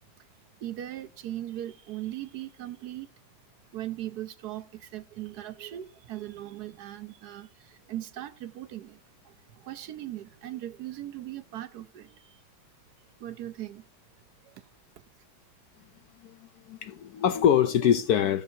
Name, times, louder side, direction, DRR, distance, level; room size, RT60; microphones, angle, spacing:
voice 1, 0.6-3.1 3.7-9.0 9.2-12.4 13.2-13.9 14.4-14.7, right 13 dB, 65° right, 1.1 m, -39 dB
voice 2, 16.2-18.4, left 9 dB, 70° left, 0.9 m, -24 dB
14.5 x 6.9 x 2.8 m
omnidirectional pair, 2.0 m